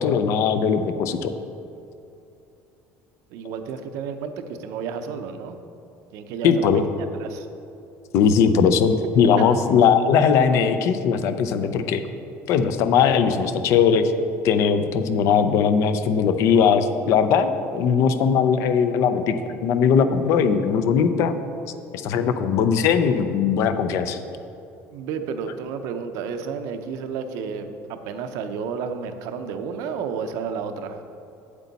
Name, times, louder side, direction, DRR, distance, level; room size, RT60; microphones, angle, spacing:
voice 1, 0.0-1.3 6.4-6.8 8.1-12.0 12.5-14.1 14.4-21.4 21.9-24.2, left 6 dB, 55° left, 10 dB, 0.5 m, -19 dB
voice 2, 3.3-5.6 6.1-6.7 7.0-7.5 9.4-9.5 24.9-31.0, right 6 dB, 70° right, 8 dB, 0.6 m, -31 dB
8.3 x 8.2 x 4.0 m, 2.7 s
cardioid pair, 160°, 6 cm